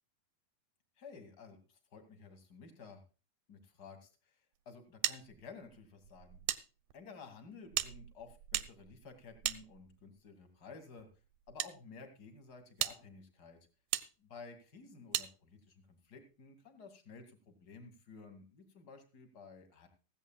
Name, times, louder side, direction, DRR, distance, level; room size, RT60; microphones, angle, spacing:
voice 1, 1.0-3.0 3.5-4.4 4.7-6.4 6.9-11.1 11.5-13.6 14.2-19.9, left 4 dB, 30° left, 7 dB, 2.0 m, -53 dB
sound 1, 5.0-6.6 6.9-7.0 7.7-10.2 11.0-11.7 12.3-12.4 12.8-13.0 13.9-14.1 15.1-15.3, right 15 dB, 75° right, 2.2 m, -37 dB
16.5 x 15.5 x 2.3 m, 0.32 s
omnidirectional pair, 4.8 m